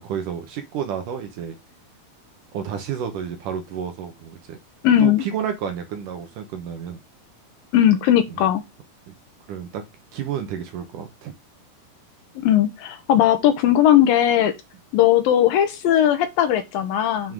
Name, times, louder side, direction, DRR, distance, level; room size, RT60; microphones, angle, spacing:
voice 1, 0.0-1.6 2.5-4.6 5.0-7.0 8.3-8.4 9.1-9.2 9.5-9.8 10.1-11.3 17.2-17.3, right 8 dB, 70° right, 2.2 m, -30 dB
voice 2, 4.8-5.2 7.7-8.6 12.4-14.5 14.9-17.3, left 11 dB, 75° left, 2.5 m, -18 dB
7.4 x 5.6 x 3.7 m
omnidirectional pair, 4.5 m